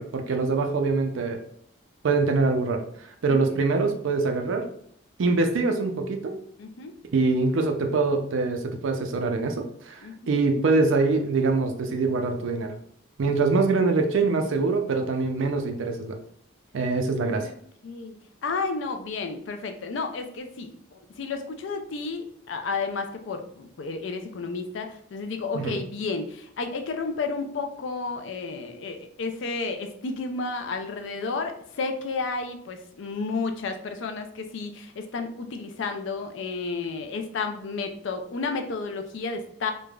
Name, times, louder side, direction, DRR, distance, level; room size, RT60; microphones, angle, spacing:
voice 1, 0.0-1.4 2.0-4.7 5.2-6.3 7.1-12.7 13.2-16.2 16.7-17.5 25.5-25.8, right 3 dB, 70° right, 5 dB, 0.4 m, -24 dB
voice 2, 3.3-3.6 6.6-6.9 10.0-10.4 17.3-17.6 17.8-18.1 18.4-39.7, left 4 dB, 65° left, 6 dB, 0.4 m, -32 dB
3.2 x 2.1 x 2.3 m, 0.65 s
head